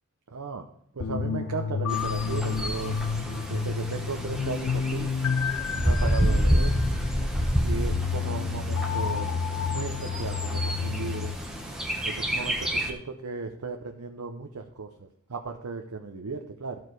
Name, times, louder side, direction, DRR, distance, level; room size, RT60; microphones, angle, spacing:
voice 1, 0.3-0.6 0.9-2.9 3.5-5.1 5.7-6.8 7.6-9.3 9.7-11.3 12.0-16.8, right 4 dB, 85° right, 4 dB, 0.7 m, -35 dB
sound 1, 1.0-11.4, left 6 dB, 85° left, 0.4 m, -30 dB
Bird, 1.9-12.9, equal, 5° right, 1.1 m, -29 dB
14.0 x 4.7 x 4.7 m, 0.69 s
head